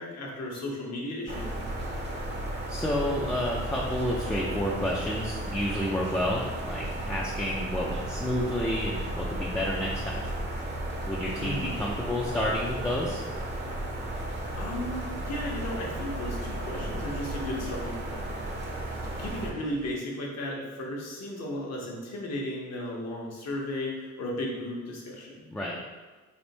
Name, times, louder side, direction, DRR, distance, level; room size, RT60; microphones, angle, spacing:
voice 1, 0.0-1.5 11.4-11.8 14.6-18.3 19.2-25.5, left 1 dB, 60° left, -2 dB, 1.0 m, -35 dB
sound 1, 1.3-19.5, right 1 dB, 35° right, 0.7 m, -34 dB
voice 2, 2.7-10.2 11.1-13.2 25.5-25.8, left 1 dB, 10° left, -4 dB, 0.4 m, -30 dB
sound 2, 11.3-19.9, right 3 dB, 75° right, 0.5 m, -50 dB
3.4 x 2.5 x 4.0 m, 1.3 s
cardioid pair, 90°, 30 cm